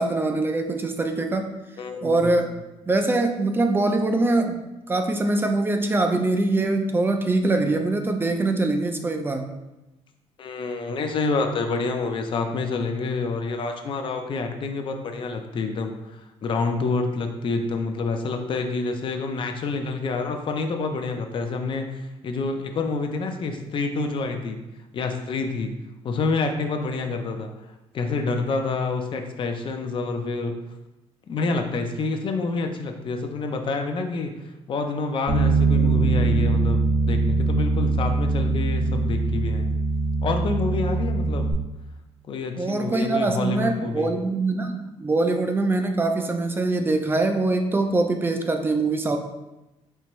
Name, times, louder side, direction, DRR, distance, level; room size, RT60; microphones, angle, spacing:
voice 1, 0.0-1.5 2.0-2.5 2.9-9.5 42.6-49.2, right 2 dB, 20° right, 5 dB, 0.4 m, -23 dB
voice 2, 1.8-2.3 10.4-24.6 24.9-25.7 26.0-27.5 27.9-30.5 31.3-34.3 34.7-39.8 40.2-41.5 42.3-44.1, left 3 dB, 45° left, 5 dB, 0.5 m, -28 dB
Bass guitar, 35.3-41.5, right 3 dB, 40° right, 1.0 m, -22 dB
4.5 x 3.4 x 3.1 m, 0.98 s
cardioid pair, 145°, 12 cm